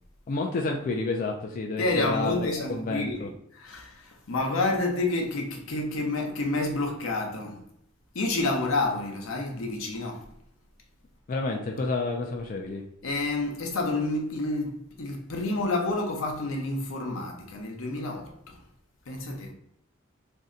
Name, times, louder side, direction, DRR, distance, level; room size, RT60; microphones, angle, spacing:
voice 1, 0.3-3.3 11.3-12.8, left 3 dB, 40° left, 0.3 m, -30 dB
voice 2, 1.8-7.6 8.1-10.3 13.0-18.3 19.1-19.5, left 2 dB, 80° left, 0.7 m, -29 dB
2.7 x 2.1 x 3.7 m
head